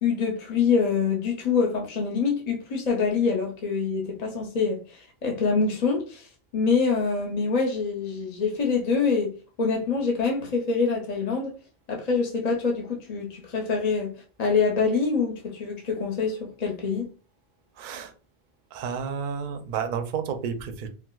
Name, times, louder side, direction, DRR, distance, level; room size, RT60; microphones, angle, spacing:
voice 1, 0.0-6.3 6.5-9.3 9.6-11.5 11.9-14.1 14.4-17.1, left 5 dB, 45° left, 0.7 m, -25 dB
voice 2, 17.8-18.1 18.7-20.9, right 7 dB, 60° right, 0.6 m, -31 dB
4.5 x 2.0 x 2.3 m
omnidirectional pair, 1.1 m